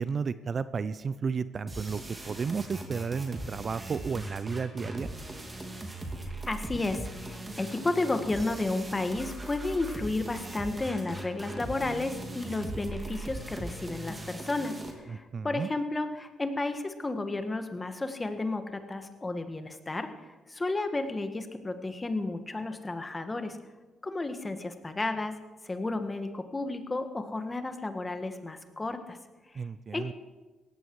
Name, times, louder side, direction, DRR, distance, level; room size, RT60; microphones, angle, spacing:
voice 1, 0.0-2.0 2.3-5.1 15.1-15.7 29.6-30.1, right 5 dB, 45° right, 15 dB, 0.5 m, -33 dB
sound 1, 1.7-14.9, right 2 dB, 20° right, 2.9 m, -40 dB
voice 2, 6.4-23.6 24.0-25.4 25.6-29.2 29.5-29.6 29.9-30.1, left 2 dB, 20° left, 8 dB, 1.6 m, -32 dB
17.5 x 15.0 x 4.8 m, 1.2 s
cardioid pair, 90°, 0 cm